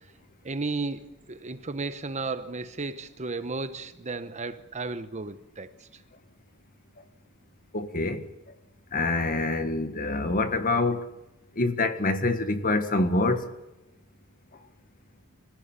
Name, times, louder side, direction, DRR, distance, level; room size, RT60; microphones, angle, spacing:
voice 1, 0.4-5.7, right 3 dB, 30° right, 1.0 m, -34 dB
voice 2, 7.7-8.3 8.9-11.1 11.5-13.5, left 2 dB, 40° left, 1.6 m, -26 dB
26.5 x 15.5 x 9.0 m
head